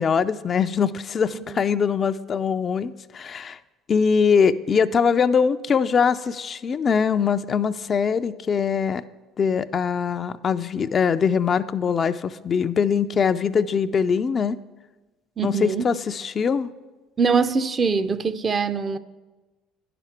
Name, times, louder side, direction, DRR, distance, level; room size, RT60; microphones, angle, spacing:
voice 1, 0.0-3.6 3.9-9.0 9.4-14.6 15.4-16.7, left 6 dB, 40° left, 0.4 m, -22 dB
voice 2, 15.4-15.9 17.2-19.0, right 5 dB, 35° right, 0.5 m, -23 dB
9.6 x 6.0 x 5.8 m
hypercardioid pair, 65°, 0 cm